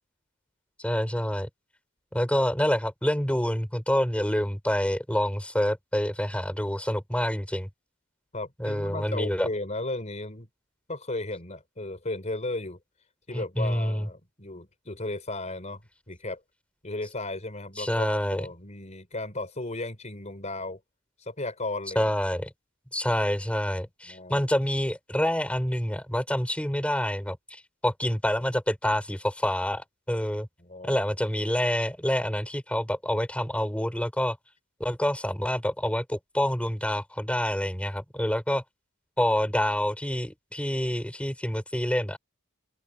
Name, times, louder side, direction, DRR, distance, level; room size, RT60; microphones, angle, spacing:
voice 1, 0.8-1.5 2.1-7.7 8.6-9.5 13.3-14.1 17.8-18.5 21.9-22.5 22.9-30.5 30.8-34.4 34.8-38.6 39.2-42.2, equal, 5° left, 5.1 m, -27 dB
voice 2, 8.3-10.5 10.9-12.8 13.3-15.8 16.1-16.4 16.8-20.8 21.2-22.1 24.1-24.4 30.6-31.1, left 2 dB, 35° left, 4.6 m, -35 dB
open air
head